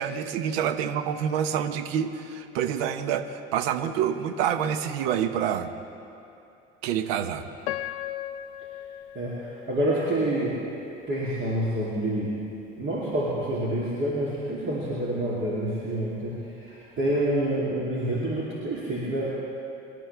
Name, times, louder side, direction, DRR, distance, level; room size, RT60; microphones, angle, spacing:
voice 1, 0.0-5.7 6.8-7.4, right 9 dB, 65° right, 10 dB, 1.0 m, -27 dB
Piano, 7.6-10.7 11.2-11.3 12.0-12.2, left 13 dB, 70° left, 0.6 m, -37 dB
voice 2, 9.1-10.6 11.1-12.3 12.8-19.3, right 1 dB, 35° right, -7 dB, 3.0 m, -27 dB
25.5 x 12.0 x 3.4 m, 2.7 s
figure-of-eight pair, 65°, 33 cm